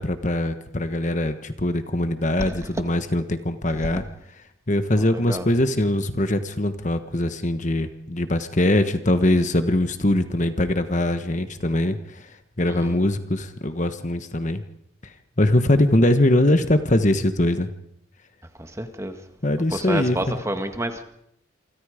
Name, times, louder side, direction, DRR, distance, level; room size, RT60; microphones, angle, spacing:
voice 1, 0.0-4.0 4.7-14.6 15.4-17.7 19.4-20.3, left 1 dB, 35° left, 1.3 m, -22 dB
voice 2, 5.0-5.5 12.7-13.0 18.6-19.2 19.7-21.0, right 1 dB, 15° right, 1.8 m, -30 dB
28.0 x 25.0 x 5.1 m
head